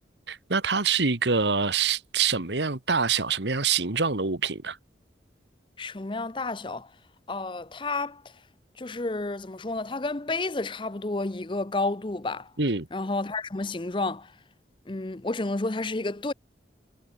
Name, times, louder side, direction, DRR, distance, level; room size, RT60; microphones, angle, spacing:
voice 1, 0.3-4.8 12.6-12.9, right 5 dB, 75° right, 1.7 m, -25 dB
voice 2, 5.8-6.9 7.3-8.2 8.8-12.5 12.9-14.3 14.9-16.3, left 2 dB, 25° left, 0.7 m, -30 dB
head